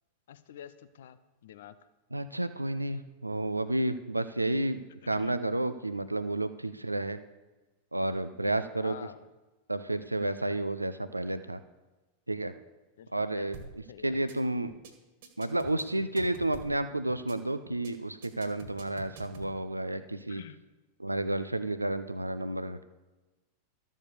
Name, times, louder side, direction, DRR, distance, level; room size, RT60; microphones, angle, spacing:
voice 1, 0.3-1.8 5.1-5.3 8.7-9.2 13.0-14.2 20.3-20.6, left 10 dB, 60° left, 13 dB, 0.7 m, -48 dB
voice 2, 2.1-7.2 7.9-8.9 9.7-11.6 12.3-12.5 13.1-13.6 14.0-14.7 15.4-20.4 21.0-22.8, right 1 dB, 85° right, 12 dB, 0.5 m, -31 dB
sound 1, 13.5-13.8 14.1-14.4 14.7-14.9 15.2-16.8 17.1-17.4 17.7-17.9 18.2-19.5, right 3 dB, 55° right, 1.9 m, -47 dB
13.0 x 7.3 x 6.8 m, 1.1 s
figure-of-eight pair, 90°, 0 cm